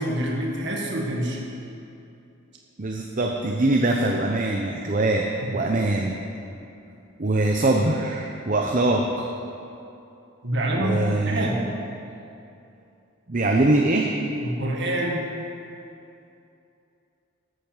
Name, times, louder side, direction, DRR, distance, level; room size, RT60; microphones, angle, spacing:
voice 1, 0.0-1.4 5.4-5.6 10.4-11.7 14.4-15.3, right 1 dB, 55° right, -1 dB, 1.7 m, -26 dB
voice 2, 2.8-5.3 5.5-6.2 7.2-9.3 10.8-11.5 13.3-14.1, right 2 dB, 40° right, 1 dB, 0.8 m, -22 dB
13.5 x 8.3 x 7.3 m, 2.7 s
head